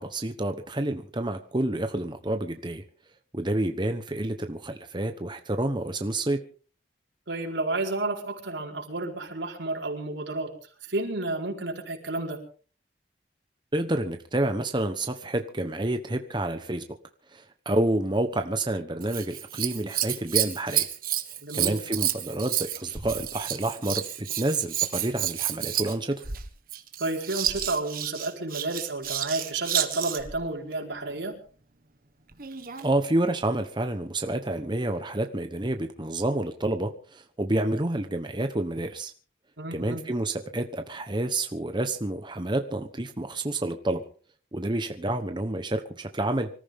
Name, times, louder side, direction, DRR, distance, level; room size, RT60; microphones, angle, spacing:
voice 1, 0.0-2.8 3.3-6.4 13.7-16.8 17.3-20.9 21.5-26.2 32.8-39.1 39.7-44.0 44.5-46.5, right 1 dB, 25° right, 6 dB, 1.1 m, -29 dB
voice 2, 7.3-10.5 10.8-12.4 21.4-21.8 27.0-31.4 39.6-40.0, right 2 dB, 85° right, 1 dB, 4.5 m, -31 dB
Scissors, 19.0-30.4 32.3-32.9 33.6-33.7, right 11 dB, 50° right, 1.7 m, -30 dB
25.5 x 14.0 x 3.7 m, 0.41 s
head